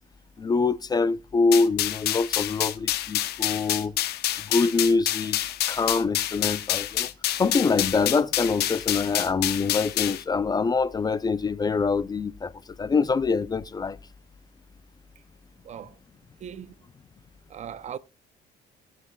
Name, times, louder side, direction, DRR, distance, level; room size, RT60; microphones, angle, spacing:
voice 1, 0.4-3.9 4.5-5.4 5.7-7.1 7.4-12.5 12.8-14.0, left 4 dB, 25° left, 0.4 m, -24 dB
sound 1, 1.5-10.2, left 13 dB, 70° left, 0.9 m, -28 dB
voice 2, 15.6-16.0 16.4-16.8 17.5-18.0, right 9 dB, 45° right, 0.6 m, -38 dB
17.5 x 7.5 x 2.3 m
cardioid pair, 110°, 17 cm